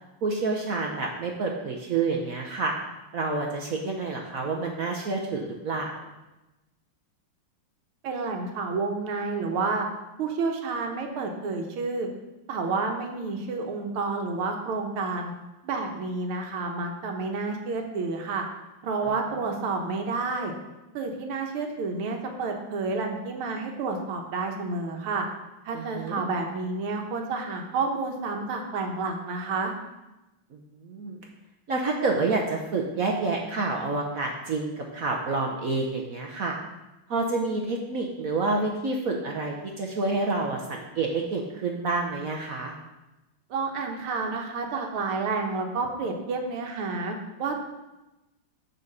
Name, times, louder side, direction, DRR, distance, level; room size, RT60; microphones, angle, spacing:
voice 1, 0.2-2.7 3.1-6.1 19.0-19.1 25.7-26.2 30.5-31.2 31.7-36.6 37.1-42.7, right 3 dB, 60° right, 1 dB, 1.0 m, -28 dB
voice 2, 8.0-9.9 10.2-12.1 12.5-15.3 15.6-18.5 18.8-20.5 20.9-25.3 25.7-29.7 43.5-47.6, right 4 dB, 90° right, 3 dB, 1.9 m, -30 dB
8.8 x 4.1 x 6.5 m, 1.0 s
omnidirectional pair, 2.3 m